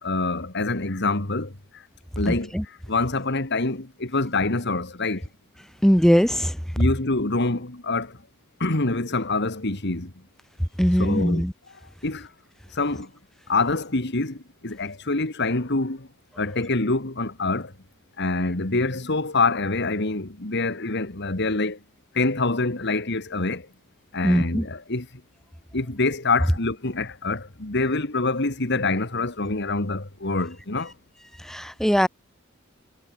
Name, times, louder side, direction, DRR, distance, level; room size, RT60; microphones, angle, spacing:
voice 1, 0.0-1.8 2.2-5.2 6.8-8.2 8.6-10.1 11.0-11.4 12.0-12.3 12.7-13.1 13.5-16.1 16.4-17.7 18.2-21.8 22.1-23.7 24.1-25.1 25.7-30.9, left 3 dB, 60° left, 2.2 m, -26 dB
voice 2, 2.3-2.6 5.8-6.6 10.8-11.5 24.2-24.7 31.4-32.1, equal, ahead, 4.0 m, -20 dB
head